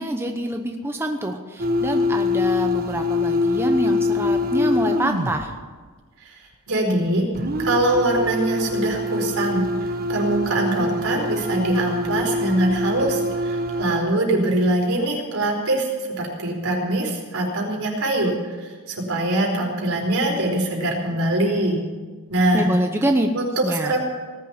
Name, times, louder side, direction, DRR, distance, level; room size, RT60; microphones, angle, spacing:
voice 1, 0.0-5.5 22.5-23.3 23.6-24.0, right 1 dB, 10° right, 4 dB, 0.9 m, -25 dB
sound 1, 1.6-5.5 7.3-14.0, left 2 dB, 45° right, 1.3 m, -24 dB
voice 2, 6.2-7.3 7.6-15.9 16.2-21.8 22.3-22.7 23.3-24.0, right 1 dB, 70° right, -1 dB, 4.6 m, -23 dB
19.0 x 7.5 x 9.7 m, 1.4 s
head